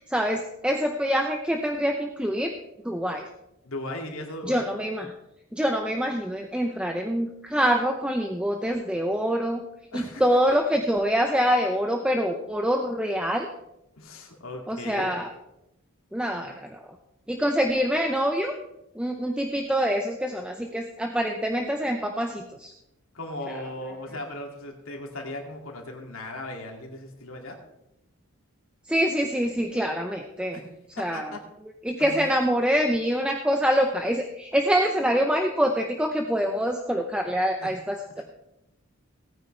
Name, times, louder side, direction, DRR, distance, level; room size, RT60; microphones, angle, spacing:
voice 1, 0.1-2.5 2.8-3.2 4.5-5.1 5.5-9.6 9.9-13.5 14.7-15.3 16.1-16.8 17.3-18.6 18.9-22.7 23.5-23.6 28.9-30.6 31.0-31.4 31.8-38.2, equal, 5° right, 3 dB, 0.6 m, -25 dB
voice 2, 3.6-4.7 9.9-10.2 14.0-15.1 23.1-27.6 30.5-30.6 31.0-31.4 32.0-32.2 37.6-37.7 38.2-38.3, left 1 dB, 80° left, 1 dB, 2.5 m, -37 dB
18.0 x 9.6 x 3.3 m, 0.88 s
head